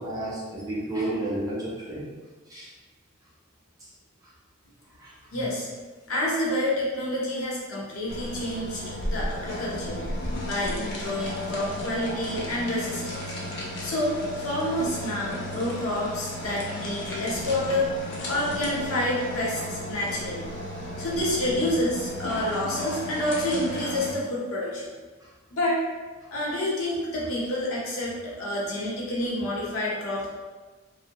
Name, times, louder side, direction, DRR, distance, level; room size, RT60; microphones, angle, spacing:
voice 1, 0.0-2.1 2.5-2.7 5.0-5.1, right 1 dB, 15° right, -6 dB, 0.5 m, -31 dB
voice 2, 5.3-5.7 6.1-10.0 10.5-13.2 13.8-17.9 18.3-20.4 21.0-24.9 25.5-25.9 26.3-30.3, left 1 dB, 80° left, -5 dB, 0.8 m, -28 dB
sound 1, 8.1-24.1, left 1 dB, 55° left, 0.5 m, -34 dB
2.6 x 2.0 x 2.9 m, 1.3 s
head